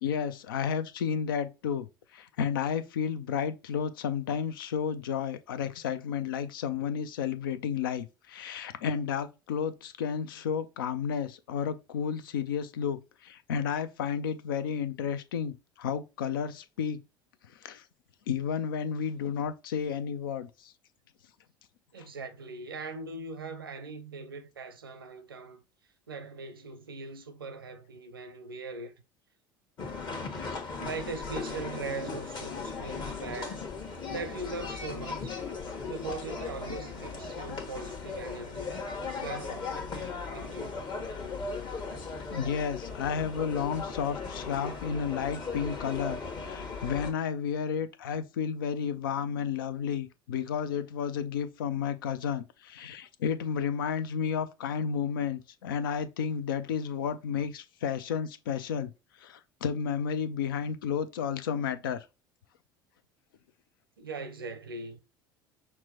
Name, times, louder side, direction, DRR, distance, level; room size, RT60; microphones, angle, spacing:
voice 1, 0.0-1.9 2.1-17.0 17.6-17.8 18.3-20.7 42.3-58.9 59.2-62.0, left 7 dB, 75° left, 0.4 m, -32 dB
voice 2, 21.9-25.6 26.1-28.9 30.8-33.6 34.1-35.4 35.8-38.8 39.2-40.8 64.0-65.0, right 3 dB, 85° right, 0.6 m, -40 dB
sound 1, 29.8-47.1, left 4 dB, 40° left, 1.2 m, -37 dB
5.9 x 2.2 x 2.8 m
figure-of-eight pair, 65°, 12 cm